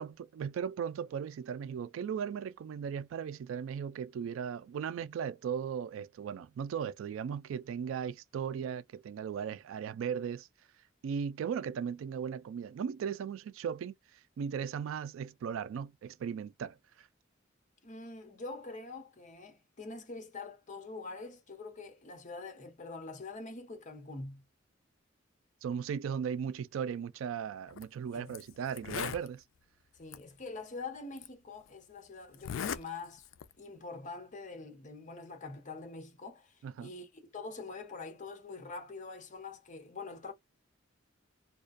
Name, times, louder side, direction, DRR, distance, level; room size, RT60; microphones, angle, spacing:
voice 1, 0.0-10.5 11.0-13.9 14.4-17.1 25.6-29.4 36.6-36.9, right 7 dB, 85° right, 0.3 m, -37 dB
voice 2, 17.8-24.4 28.1-28.4 29.9-33.2 33.6-40.3, left 3 dB, 40° left, 0.7 m, -45 dB
Zipper (clothing), 27.7-27.8 28.3-28.4 28.7-29.3 30.1-30.2 31.2-31.3 32.3-32.8 33.2-33.5, left 8 dB, 75° left, 0.3 m, -37 dB
2.3 x 2.2 x 2.4 m
head